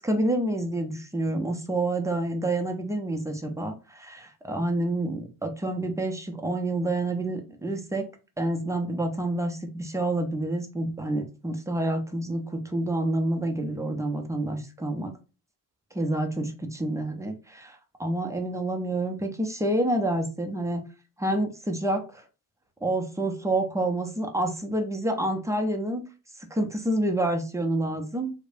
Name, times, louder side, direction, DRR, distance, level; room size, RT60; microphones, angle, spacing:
voice 1, 0.0-8.1 8.4-15.1 15.9-20.8 21.2-22.2 22.8-26.0 26.5-28.3, right 1 dB, 5° right, 4 dB, 0.6 m, -28 dB
3.1 x 2.0 x 2.5 m, 0.32 s
figure-of-eight pair, 40°, 49 cm